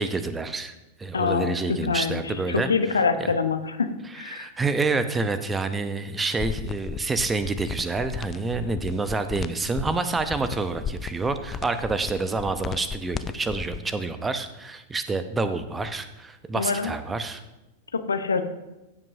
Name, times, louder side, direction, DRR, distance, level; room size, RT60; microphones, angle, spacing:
voice 1, 0.0-3.3 4.1-17.4, right 3 dB, 15° right, 10 dB, 0.8 m, -28 dB
voice 2, 1.1-4.5 16.5-16.9 17.9-18.4, left 5 dB, 75° left, 9 dB, 0.8 m, -25 dB
sound 1, 6.4-13.8, left 7 dB, 25° left, 0.4 m, -35 dB
15.5 x 7.5 x 2.7 m, 0.99 s
figure-of-eight pair, 95°, 0 cm